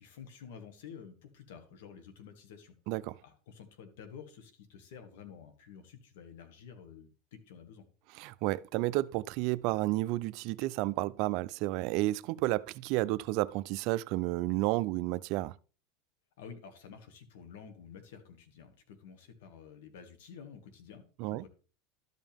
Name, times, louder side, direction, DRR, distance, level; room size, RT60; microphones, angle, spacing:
voice 1, 0.0-2.7 3.2-7.8 16.4-21.5, left 7 dB, 80° left, 1.8 m, -50 dB
voice 2, 2.9-3.2 8.2-15.6 21.2-21.4, right 18 dB, 60° right, 0.4 m, -31 dB
12.5 x 5.4 x 3.5 m
supercardioid pair, 120°, 0 cm